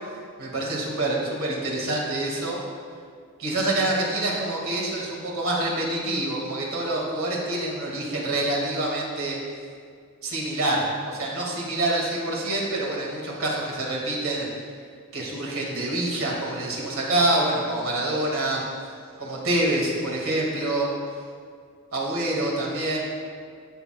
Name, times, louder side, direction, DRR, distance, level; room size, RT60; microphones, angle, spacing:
voice 1, 0.4-2.6 3.4-9.4 10.2-14.5 15.1-18.6 19.2-20.9 21.9-23.0, right 1 dB, 65° right, -3 dB, 1.9 m, -26 dB
16.5 x 6.1 x 2.3 m, 2.1 s
head